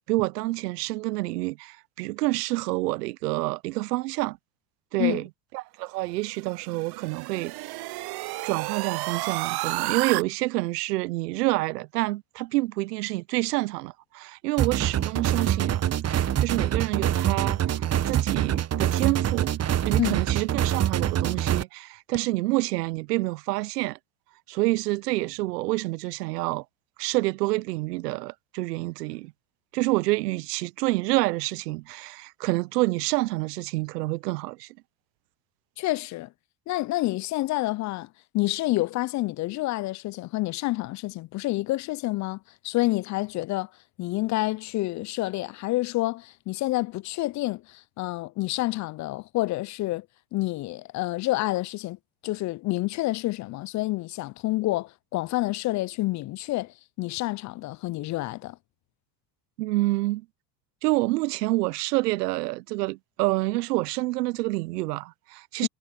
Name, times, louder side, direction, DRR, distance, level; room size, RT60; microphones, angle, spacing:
voice 1, 0.0-4.4 4.9-5.3 5.5-7.8 8.4-15.8 16.1-19.5 19.8-24.0 24.5-26.6 27.0-29.3 29.7-34.7 59.6-60.3 60.8-65.7, right 20 dB, 85° right, 0.7 m, -28 dB
sound 1, 6.3-10.2, right 20 dB, 55° right, 0.9 m, -31 dB
sound 2, 14.6-21.6, right 11 dB, 35° right, 1.1 m, -25 dB
voice 2, 35.8-36.3 36.7-38.1 38.3-43.7 44.0-50.1 50.3-52.0 52.2-58.6 65.6-65.7, left 18 dB, 40° left, 0.4 m, -28 dB
hypercardioid pair, 80°, 46 cm